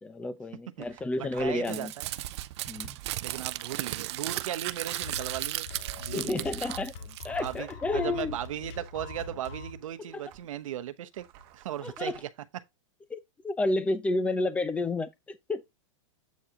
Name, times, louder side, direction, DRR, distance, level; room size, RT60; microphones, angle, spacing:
voice 1, 0.0-1.9 2.7-3.0 6.1-6.9 7.2-8.4 10.1-10.2 11.8-12.2 13.1-13.2 13.4-15.6, left 2 dB, 10° left, 0.7 m, -30 dB
sound 1, 0.8-1.8 2.3-10.7 11.1-12.2, right 11 dB, 40° right, 1.3 m, -53 dB
voice 2, 1.4-2.1 3.2-5.7 6.0-6.5 7.4-11.3 11.5-12.3, right 11 dB, 80° right, 0.9 m, -37 dB
Crumpling crinkling, 1.6-7.6, right 15 dB, 55° right, 0.6 m, -35 dB
sound 2, 5.0-9.8, left 3 dB, 50° left, 1.8 m, -43 dB
8.4 x 4.5 x 3.7 m
supercardioid pair, 150°, 17 cm